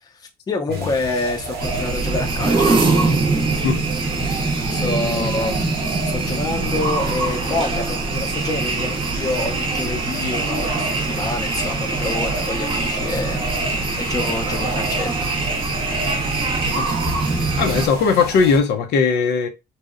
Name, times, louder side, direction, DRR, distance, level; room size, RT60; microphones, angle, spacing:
voice 1, 0.0-2.9 4.7-5.6 6.0-13.4 14.0-15.1, left 2 dB, 25° left, 0.5 m, -27 dB
sound 1, 0.7-18.6, right 2 dB, 80° right, 0.7 m, -32 dB
sound 2, 1.6-17.9, right 3 dB, 30° right, 0.6 m, -23 dB
voice 2, 4.7-5.5 16.8-16.9 17.6-19.5, left 5 dB, 85° left, 0.5 m, -19 dB
2.7 x 2.0 x 2.4 m
cardioid pair, 150°, 17 cm